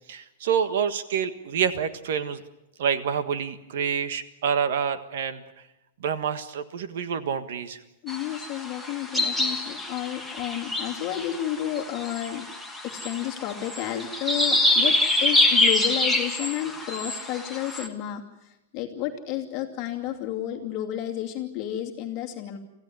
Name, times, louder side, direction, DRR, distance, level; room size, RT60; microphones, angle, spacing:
voice 1, 0.1-2.4 2.8-5.4 6.0-7.8, right 7 dB, 60° right, 11 dB, 1.5 m, -27 dB
voice 2, 8.0-12.5 12.8-22.6, left 12 dB, 25° left, 1 dB, 2.6 m, -31 dB
sound 1, 8.1-17.9, left 2 dB, ahead, 1.3 m, -26 dB
26.0 x 15.5 x 9.4 m, 0.96 s
supercardioid pair, 175°, 0 cm